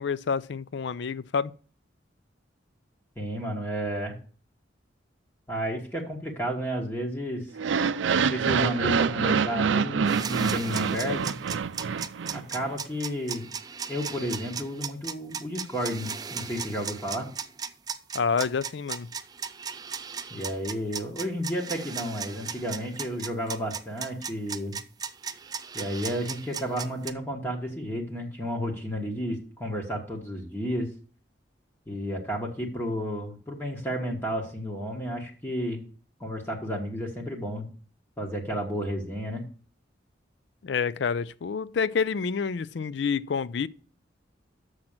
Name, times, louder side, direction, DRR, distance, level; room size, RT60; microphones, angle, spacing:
voice 1, 0.0-1.5 18.1-19.1 40.6-43.7, left 5 dB, 70° left, 0.4 m, -28 dB
voice 2, 3.2-4.1 5.5-7.5 8.2-11.3 12.3-13.5 13.9-17.3 20.3-24.8 25.7-30.9 31.9-35.8 36.2-37.7 38.2-39.4, equal, 10° left, 1.3 m, -32 dB
sound 1, 7.5-12.7, right 6 dB, 85° right, 0.4 m, -26 dB
sound 2, 10.1-27.1, right 6 dB, 20° right, 0.4 m, -36 dB
6.5 x 6.0 x 7.2 m
head